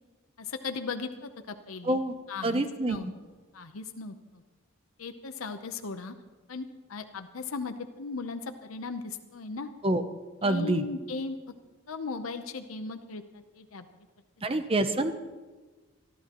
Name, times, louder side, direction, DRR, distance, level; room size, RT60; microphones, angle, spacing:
voice 1, 0.4-2.0 2.3-3.1 3.5-4.4 5.0-6.1 6.5-9.7 10.4-11.4 11.9-13.9 14.5-14.6, left 4 dB, 85° left, 7 dB, 0.8 m, -37 dB
voice 2, 1.8-2.2 2.4-3.0 9.8-10.0 10.4-10.8 14.4-15.1, right 1 dB, 25° right, 9 dB, 0.6 m, -26 dB
25.5 x 12.0 x 3.0 m, 1.3 s
head